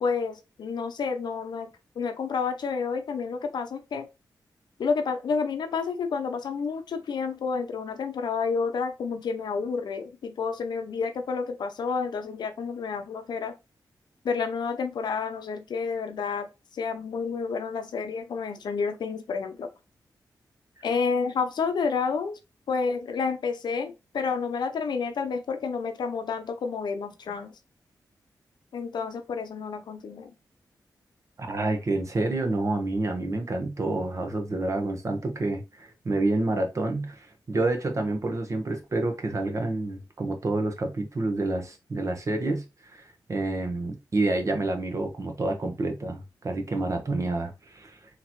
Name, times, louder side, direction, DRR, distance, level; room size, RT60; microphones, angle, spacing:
voice 1, 0.0-1.7 2.0-4.1 4.8-13.5 14.2-16.5 16.7-19.7 20.8-22.4 22.7-27.5 28.7-30.3, left 5 dB, 80° left, 0.6 m, -30 dB
voice 2, 31.4-48.0, right 2 dB, 45° right, 1.0 m, -28 dB
3.8 x 2.9 x 2.9 m
cardioid pair, 85°, 7 cm